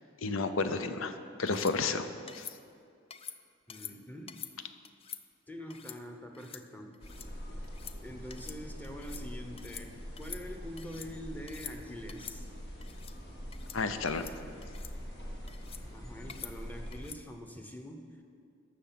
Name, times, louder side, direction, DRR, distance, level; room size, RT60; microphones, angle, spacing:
voice 1, 0.2-2.1 2.3-2.4 13.7-14.3, left 4 dB, 80° left, 9 dB, 0.7 m, -31 dB
sound 1, 1.5-1.8 2.3-2.6 3.1-3.4 3.7-3.9 4.3-4.5 4.8-5.2 5.7-6.0 6.3-6.6 6.9-7.3 7.6-8.0 8.3-8.6 8.8-9.2 9.6-9.9 10.2-11.1 11.5-11.8 12.1-12.4 12.8-13.1 13.5-13.8 14.1-14.3 14.6-14.9 15.5-15.8 16.3-16.5 16.9-17.2, left 8 dB, 30° left, 0.4 m, -46 dB
voice 2, 3.7-4.6 5.5-7.0 8.0-12.5 15.9-18.2, equal, 10° left, 4 dB, 0.9 m, -45 dB
sound 2, 7.0-17.0, equal, 55° left, 1.8 m, -44 dB
14.0 x 6.3 x 5.8 m, 2.3 s
head